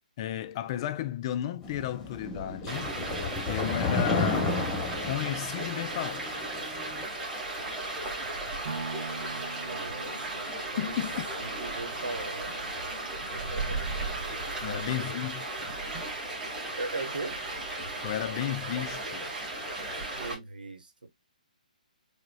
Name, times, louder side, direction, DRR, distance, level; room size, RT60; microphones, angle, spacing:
voice 1, 0.2-3.0 3.5-4.6 5.1-6.3 10.8-11.3 14.6-15.7 18.0-19.3, left 12 dB, 35° left, 0.3 m, -33 dB
sound 1, 1.6-7.0, left 3 dB, 10° left, 1.0 m, -32 dB
Stream, 2.7-20.3, right 2 dB, 10° right, 1.5 m, -35 dB
sound 2, 8.7-16.8 17.2-17.3, right 4 dB, 60° right, 1.8 m, -45 dB
voice 2, 9.7-10.3 10.7-12.7 13.3-13.8 14.6-15.1 16.8-17.4 20.1-21.1, right 3 dB, 90° right, 0.9 m, -39 dB
4.8 x 2.2 x 2.3 m
hypercardioid pair, 150°, 5 cm